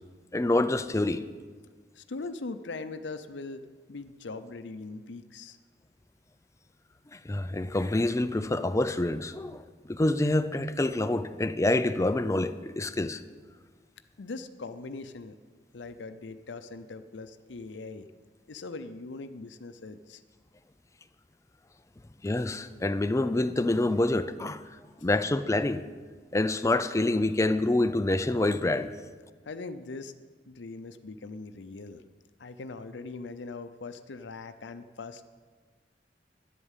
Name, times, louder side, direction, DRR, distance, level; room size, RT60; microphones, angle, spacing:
voice 1, 0.3-1.2 7.1-13.2 22.2-24.6 25.0-25.8 26.3-28.9, left 2 dB, 15° left, 0.4 m, -27 dB
voice 2, 2.0-3.6 3.9-5.6 14.2-15.4 15.7-18.1 18.5-20.2 29.4-30.1 30.5-32.0 32.4-35.2, left 3 dB, 85° left, 0.6 m, -41 dB
11.0 x 8.2 x 7.3 m
head